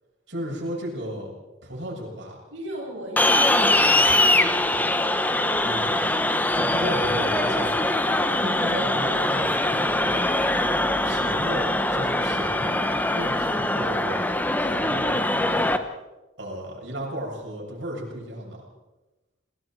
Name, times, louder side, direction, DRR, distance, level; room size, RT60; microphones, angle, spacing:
voice 1, 0.3-1.4 1.6-2.4 5.6-5.9 6.5-7.7 8.2-10.4 11.0-12.8 13.1-14.2 14.6-15.7 16.4-18.6, equal, 70° right, -2 dB, 7.6 m, -34 dB
voice 2, 2.5-6.5 6.8-7.5, right 1 dB, 90° right, -4 dB, 6.2 m, -38 dB
sound 1, 3.2-15.8, left 1 dB, 10° left, 1.0 m, -22 dB
29.5 x 19.0 x 4.7 m, 1.1 s
head